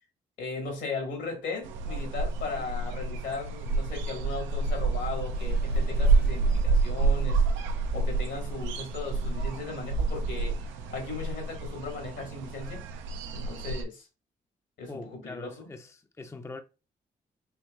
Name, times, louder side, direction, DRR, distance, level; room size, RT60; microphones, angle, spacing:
voice 1, 0.4-7.4 7.9-12.8 13.3-14.1 14.8-15.7, left 4 dB, 75° left, 1.5 m, -37 dB
sound 1, 1.6-13.8, right 3 dB, 85° right, 0.4 m, -28 dB
sound 2, 5.3-11.2, right 3 dB, 55° right, 0.9 m, -51 dB
voice 2, 14.9-16.6, left 3 dB, 15° left, 0.4 m, -42 dB
4.5 x 2.8 x 2.3 m
supercardioid pair, 45°, 19 cm